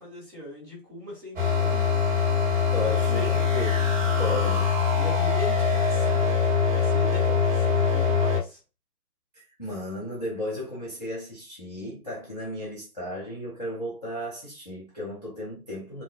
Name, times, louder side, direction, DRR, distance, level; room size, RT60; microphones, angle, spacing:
voice 1, 0.0-2.0 2.8-3.3 4.1-4.5 5.0-6.3 6.7-8.6, left 1 dB, 10° right, 0.7 m, -39 dB
sound 1, 1.4-8.4, left 6 dB, 50° right, 1.4 m, -23 dB
voice 2, 2.7-4.6 9.3-16.0, left 1 dB, 30° left, 0.4 m, -34 dB
2.8 x 2.3 x 2.2 m
figure-of-eight pair, 145°, 48 cm